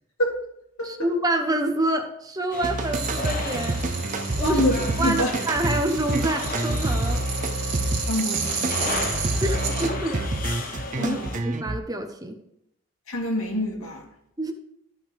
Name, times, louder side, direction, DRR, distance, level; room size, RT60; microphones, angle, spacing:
voice 1, 0.8-3.8 4.1-4.6 5.0-7.2 9.4-10.2 10.4-12.4 14.4-14.5, right 1 dB, 15° right, 5 dB, 0.9 m, -27 dB
sound 1, 2.5-11.4, left 3 dB, 40° left, 1.1 m, -35 dB
sound 2, 2.6-11.8, right 2 dB, 35° right, 0.5 m, -28 dB
sound 3, 2.9-9.9, right 6 dB, 55° right, 2.2 m, -33 dB
voice 2, 4.4-5.3 8.0-9.1 11.0-11.3 13.1-14.1, left 1 dB, 75° left, 0 dB, 2.4 m, -26 dB
13.5 x 5.7 x 3.4 m, 0.79 s
head